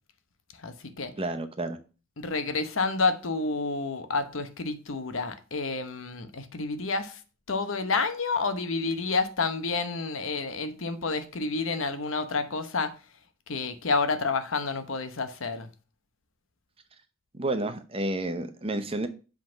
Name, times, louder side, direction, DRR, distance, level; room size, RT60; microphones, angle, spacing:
voice 1, 0.6-1.1 2.2-7.2 7.5-12.9 13.5-15.7, left 4 dB, 80° left, 0.9 m, -29 dB
voice 2, 1.2-1.8 17.3-19.1, right 2 dB, 30° right, 0.7 m, -30 dB
7.7 x 3.9 x 5.7 m
head